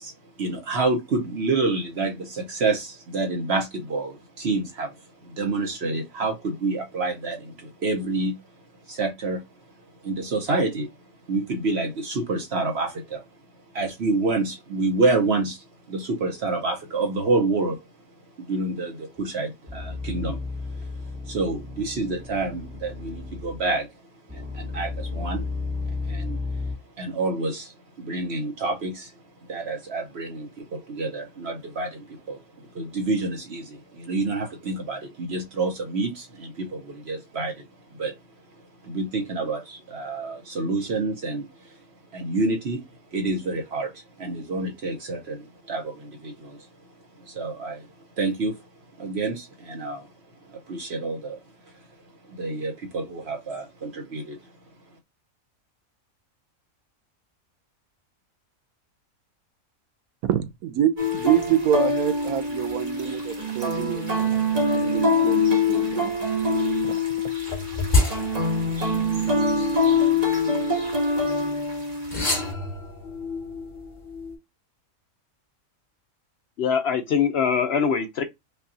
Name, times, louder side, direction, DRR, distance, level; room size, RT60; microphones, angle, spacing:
voice 1, 0.0-8.4 8.9-9.4 10.0-10.9 11.3-13.2 13.7-17.8 18.4-20.4 20.7-20.8 21.2-23.9 24.3-25.5 26.0-26.4 27.0-29.1 29.5-37.6 37.9-38.1 38.8-41.8 42.1-42.8 43.1-46.7 47.2-47.9 48.2-48.6 49.0-50.1 50.4-51.4 52.3-54.4, right 3 dB, 55° right, 1.0 m, -28 dB
sound 1, 19.2-19.3 19.7-23.8 24.3-26.8, left 3 dB, 10° right, 0.7 m, -33 dB
voice 2, 60.2-64.3 64.7-66.1 66.8-67.0, right 11 dB, 90° right, 1.1 m, -26 dB
sound 2, 61.0-72.5, left 2 dB, 30° right, 1.1 m, -24 dB
sound 3, 67.5-71.3 72.0-74.4, left 3 dB, 40° left, 2.1 m, -29 dB
voice 3, 76.6-78.2, left 6 dB, 60° left, 0.7 m, -23 dB
5.3 x 2.3 x 2.6 m
omnidirectional pair, 1.5 m